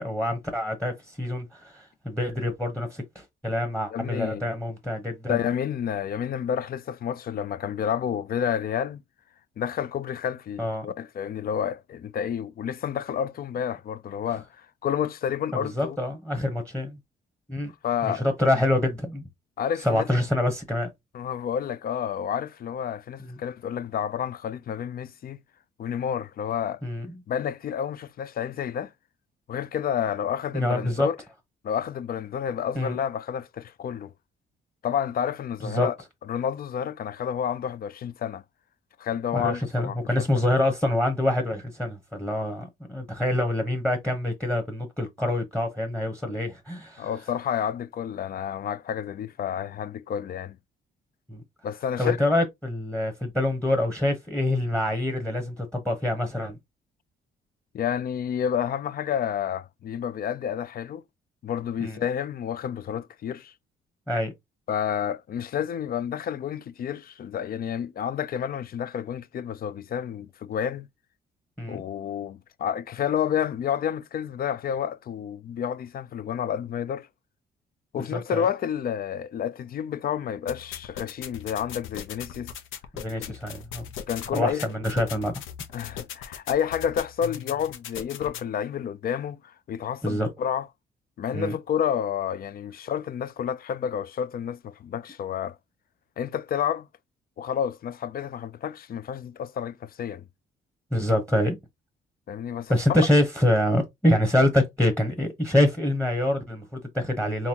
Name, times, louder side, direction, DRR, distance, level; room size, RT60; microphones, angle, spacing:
voice 1, 0.0-5.4 10.6-10.9 15.7-17.0 17.5-17.7 18.0-19.2 19.8-20.9 23.2-23.4 26.8-27.2 30.5-31.1 32.7-33.0 35.6-35.9 39.3-47.1 51.3-51.4 52.0-56.6 61.8-62.0 64.1-64.3 71.6-71.8 78.1-78.5 82.9-83.8 84.3-85.4 90.0-90.3 91.3-91.5 100.9-101.6 102.7-107.5, left 1 dB, 5° left, 1.0 m, -26 dB
voice 2, 3.9-4.5 5.3-9.0 9.6-16.0 17.8-18.2 19.6-20.0 21.1-25.4 25.8-26.8 27.3-28.9 29.5-31.2 31.6-34.1 34.8-35.9 36.3-38.4 39.0-40.3 47.0-50.6 51.6-52.2 57.7-61.0 61.4-63.5 64.7-70.9 71.7-77.1 77.9-82.5 84.1-84.6 85.7-90.7 91.2-95.6 96.2-96.9 97.4-100.2 102.3-102.8, left 8 dB, 50° left, 0.4 m, -30 dB
sound 1, 80.5-88.5, left 9 dB, 80° left, 0.7 m, -39 dB
4.0 x 2.9 x 2.8 m
cardioid pair, 90°, 20 cm